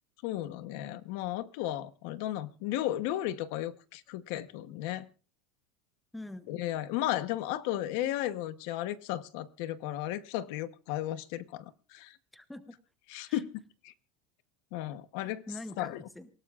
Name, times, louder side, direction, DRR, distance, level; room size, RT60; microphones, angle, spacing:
voice 1, 0.2-5.1 6.5-12.2 13.1-13.5 13.8-13.9 14.7-15.5 15.8-16.0, left 13 dB, 55° left, 0.9 m, -34 dB
voice 2, 6.1-6.6 12.3-12.8 13.3-13.4 15.2-16.3, left 1 dB, 5° left, 0.8 m, -45 dB
27.0 x 17.0 x 2.4 m
supercardioid pair, 175°, 0 cm